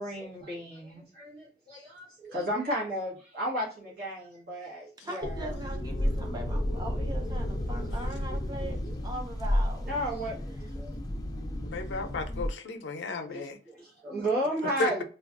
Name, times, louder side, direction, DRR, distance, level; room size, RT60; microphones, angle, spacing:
voice 1, 0.0-5.3 9.9-10.9 13.3-15.0, right 1 dB, 55° right, 1.2 m, -33 dB
voice 2, 5.0-9.9 10.6-10.7, right 1 dB, 25° right, 0.7 m, -40 dB
sound 1, 5.2-12.5, left 1 dB, 20° left, 0.4 m, -32 dB
voice 3, 11.6-13.6 14.8-15.0, left 3 dB, 85° left, 0.5 m, -33 dB
3.2 x 2.3 x 2.4 m
head